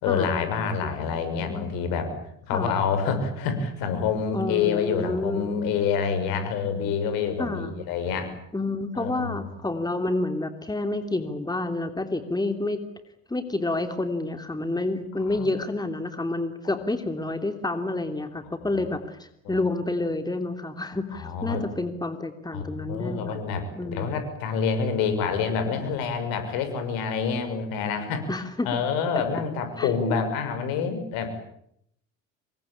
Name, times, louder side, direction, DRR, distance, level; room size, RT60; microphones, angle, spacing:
voice 1, 0.0-2.1 2.5-8.3 8.9-9.5 15.3-15.5 16.6-16.8 18.7-18.8 19.4-19.6 21.1-21.7 22.5-31.5, left 6 dB, 65° left, 9 dB, 6.4 m, -27 dB
voice 2, 2.5-2.8 4.3-5.5 7.4-7.8 8.5-12.8 13.3-23.4 23.8-24.2 28.3-28.8 29.8-30.2, left 2 dB, 10° left, 7 dB, 3.1 m, -29 dB
27.0 x 23.0 x 8.8 m, 0.73 s
hypercardioid pair, 65°, 38 cm